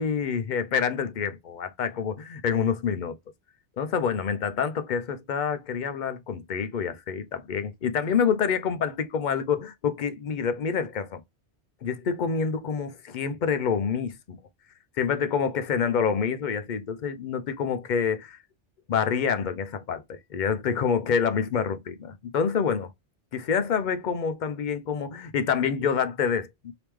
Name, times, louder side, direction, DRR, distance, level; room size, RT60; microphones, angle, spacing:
voice 1, 0.0-3.2 3.8-11.2 11.8-14.4 14.9-18.4 18.9-22.9 23.3-26.7, left 6 dB, 55° left, 0.5 m, -27 dB
3.4 x 2.8 x 3.0 m
omnidirectional pair, 1.2 m